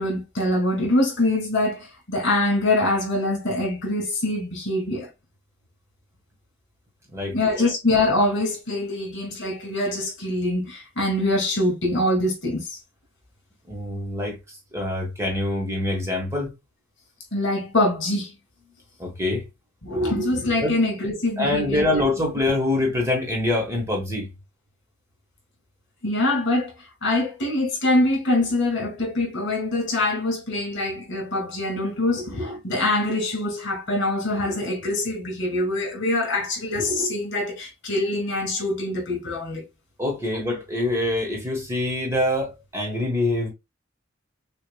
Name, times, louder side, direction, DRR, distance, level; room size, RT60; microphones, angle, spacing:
voice 1, 0.0-5.1 7.3-12.8 17.3-18.3 19.8-22.0 26.0-26.7 27.0-39.6, left 1 dB, 55° left, 2.2 m, -24 dB
voice 2, 7.1-7.7 13.7-16.5 19.0-19.5 20.6-20.8 21.4-24.3 40.0-43.5, left 2 dB, 15° right, 1.2 m, -25 dB
6.4 x 2.4 x 2.2 m
head